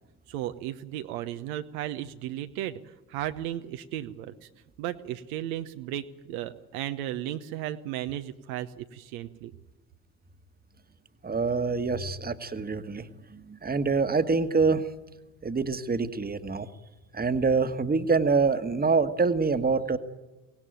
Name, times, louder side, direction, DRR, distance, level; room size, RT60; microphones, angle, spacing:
voice 1, 0.3-4.5 4.8-9.5, right 12 dB, 65° right, 9 dB, 1.1 m, -35 dB
voice 2, 11.2-14.8 15.4-16.7 17.1-20.0, right 4 dB, 20° right, 11 dB, 1.5 m, -26 dB
23.5 x 18.0 x 9.2 m, 1.1 s
figure-of-eight pair, 55°, 46 cm